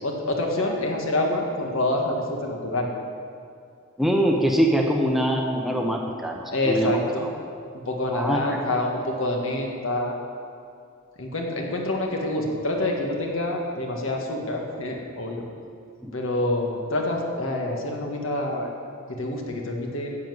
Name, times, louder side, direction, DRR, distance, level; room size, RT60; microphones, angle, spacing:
voice 1, 0.0-2.9 6.5-7.3 7.9-10.2 11.2-15.4 16.1-18.7 19.2-20.1, left 1 dB, 70° left, 1 dB, 1.7 m, -27 dB
voice 2, 4.0-6.9 8.1-8.6 16.0-16.1, equal, ahead, 1 dB, 0.8 m, -23 dB
10.5 x 7.5 x 7.9 m, 2.3 s
head